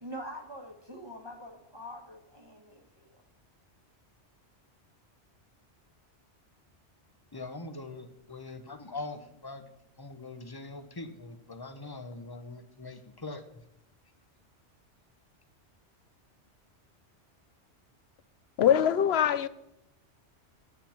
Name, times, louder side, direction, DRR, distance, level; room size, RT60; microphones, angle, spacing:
voice 1, 0.0-3.2, equal, 20° right, 2 dB, 1.4 m, -44 dB
voice 2, 7.3-9.6 10.0-13.4, left 3 dB, 20° left, 9 dB, 0.9 m, -42 dB
voice 3, 18.6-19.5, left 9 dB, 65° left, 15 dB, 0.8 m, -23 dB
10.0 x 9.1 x 5.8 m, 0.85 s
omnidirectional pair, 1.2 m